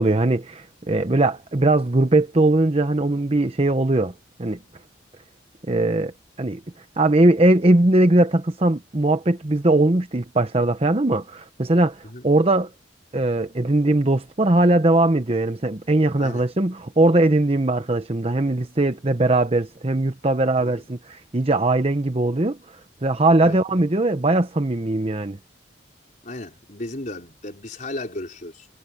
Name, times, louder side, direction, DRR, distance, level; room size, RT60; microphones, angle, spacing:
voice 1, 0.0-4.1 4.4-4.6 5.7-6.1 6.4-6.6 7.0-12.7 13.1-25.4, right 2 dB, 35° right, 0.9 m, -20 dB
voice 2, 26.2-28.7, left 1 dB, 45° left, 4.4 m, -35 dB
head